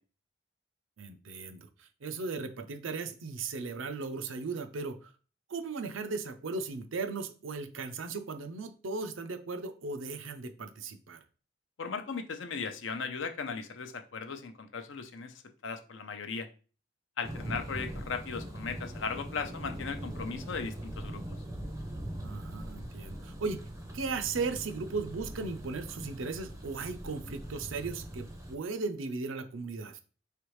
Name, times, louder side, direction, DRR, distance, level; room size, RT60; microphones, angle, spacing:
voice 1, 1.0-5.1 5.5-11.2 22.2-23.6 23.9-30.0, right 4 dB, 80° right, 8 dB, 0.5 m, -37 dB
voice 2, 11.8-15.3 15.6-16.5 17.2-21.2, left 5 dB, 70° left, 7 dB, 0.6 m, -37 dB
Thunder, 17.2-28.6, right 1 dB, 15° right, 0.5 m, -41 dB
4.7 x 3.3 x 3.1 m, 0.37 s
head